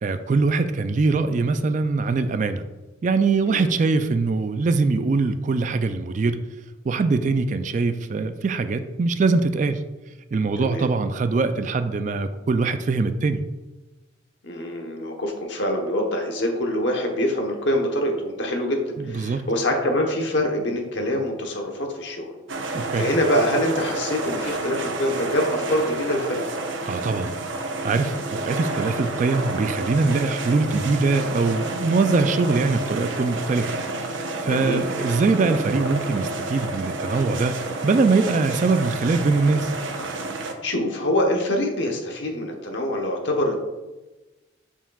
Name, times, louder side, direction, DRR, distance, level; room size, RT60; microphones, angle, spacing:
voice 1, 0.0-2.6 3.0-6.4 6.8-9.8 10.3-13.4 19.0-19.4 22.7-23.1 26.9-27.3 27.8-33.8 34.1-39.7, right 3 dB, 40° right, 10 dB, 0.3 m, -22 dB
voice 2, 10.6-10.9 14.4-18.8 19.0-22.3 22.6-26.5 34.4-34.8 40.6-43.6, left 1 dB, 65° left, 2 dB, 1.1 m, -25 dB
sound 1, 22.5-40.5, right 2 dB, 75° right, 0.7 m, -30 dB
7.1 x 5.6 x 2.3 m, 1.1 s
head